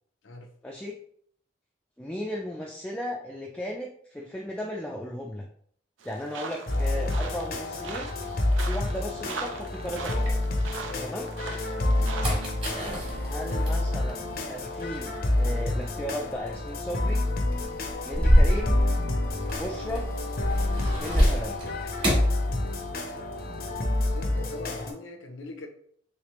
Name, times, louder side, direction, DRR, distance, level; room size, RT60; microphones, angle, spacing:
voice 1, 0.6-1.0 2.0-5.5 6.0-8.1 8.7-10.3 11.0-11.3 13.2-14.2 14.5-17.2 18.0-18.9 19.6-20.1 21.0-21.6, equal, 5° left, -1 dB, 0.3 m, -35 dB
sound 1, 6.0-12.5, right 4 dB, 85° right, 0.5 m, -40 dB
sound 2, 6.7-24.9, left 1 dB, 50° left, 0.6 m, -28 dB
sound 3, 8.2-11.0 11.4-23.2 23.4-24.3, equal, 30° right, 1.3 m, -29 dB
voice 2, 10.7-11.6 24.1-25.7, left 2 dB, 90° left, 5 dB, 0.6 m, -42 dB
3.3 x 3.2 x 3.0 m, 0.62 s
head